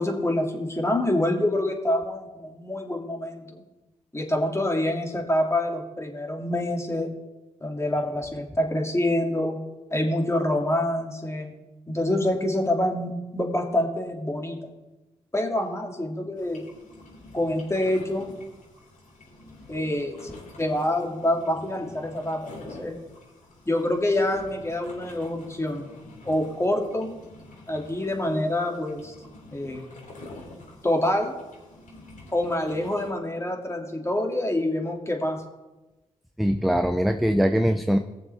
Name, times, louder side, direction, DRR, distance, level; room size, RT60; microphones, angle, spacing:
voice 1, 0.0-3.6 4.1-7.1 7.6-9.6 9.9-11.5 11.9-14.6 15.3-16.7 17.3-18.3 19.7-20.3 20.6-23.0 23.7-25.9 26.2-27.2 27.7-29.1 29.5-29.9 30.8-31.3 32.3-35.4, left 1 dB, 20° left, 1 dB, 2.7 m, -26 dB
sound 1, 16.4-33.1, left 2 dB, 60° left, 3.4 m, -47 dB
voice 2, 36.4-38.0, equal, ahead, 7 dB, 0.7 m, -22 dB
18.5 x 7.1 x 3.6 m, 1.1 s
supercardioid pair, 45°, 15 cm